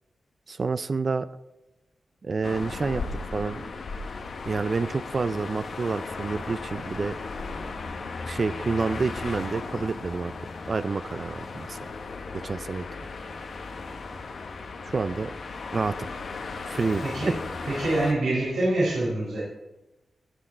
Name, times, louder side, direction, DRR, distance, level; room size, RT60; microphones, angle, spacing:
voice 1, 0.5-1.3 2.2-3.0 3.3-3.7 4.4-7.2 8.2-10.3 10.7-11.8 12.4-12.9 14.8-15.3 15.7-16.0 16.7-17.3, right 4 dB, 50° right, 13 dB, 0.4 m, -28 dB
sound 1, 2.4-18.1, left 4 dB, 75° left, 1.2 m, -36 dB
voice 2, 17.0-17.3 17.6-19.4, right 2 dB, 85° right, -7 dB, 4.1 m, -25 dB
17.5 x 6.4 x 4.4 m, 0.99 s
cardioid pair, 60°, 0 cm